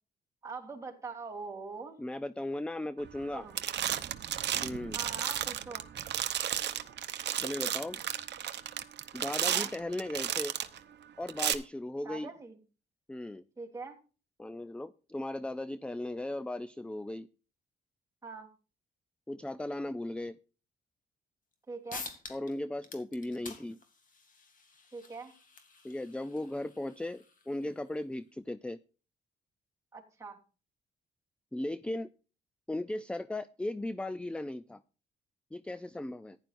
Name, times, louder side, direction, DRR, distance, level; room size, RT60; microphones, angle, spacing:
voice 1, 0.4-2.0 3.3-3.6 4.9-5.8 9.4-9.7 12.0-12.6 13.6-14.0 18.2-18.5 21.7-22.1 24.9-25.3 29.9-30.4, right 4 dB, 15° right, -1 dB, 3.2 m, -43 dB
voice 2, 2.0-3.4 4.6-5.0 7.4-8.0 9.1-10.6 11.2-12.3 13.1-13.4 14.4-17.3 19.3-20.4 22.3-23.8 25.8-28.8 31.5-32.1 32.7-34.8 35.5-36.4, left 1 dB, 5° left, 15 dB, 0.4 m, -37 dB
sound 1, 3.1-3.3 3.6-10.8 11.3-11.5, right 10 dB, 60° right, 0.9 m, -33 dB
sound 2, 21.5-21.6 21.9-22.5 22.8-28.0, left 4 dB, 45° left, 2.4 m, -49 dB
15.0 x 10.5 x 2.5 m, 0.35 s
cardioid pair, 90°, 20 cm